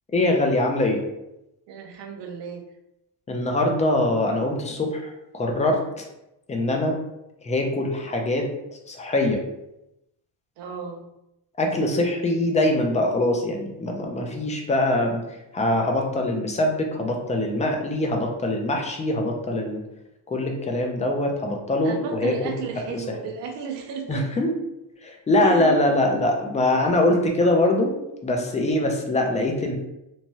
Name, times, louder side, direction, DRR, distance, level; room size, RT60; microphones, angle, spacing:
voice 1, 0.1-1.0 3.3-6.0 6.5-7.0 7.4-8.5 8.9-9.4 11.6-15.2 15.5-19.8 20.3-22.6 22.9-23.1 24.1-24.6 25.0-29.8, left 1 dB, 15° left, 2 dB, 0.3 m, -23 dB
voice 2, 1.7-2.6 10.6-11.1 21.8-24.3 25.4-25.9, right 6 dB, 65° right, 3 dB, 0.6 m, -34 dB
3.1 x 2.2 x 2.6 m, 0.87 s
cardioid pair, 125°, 46 cm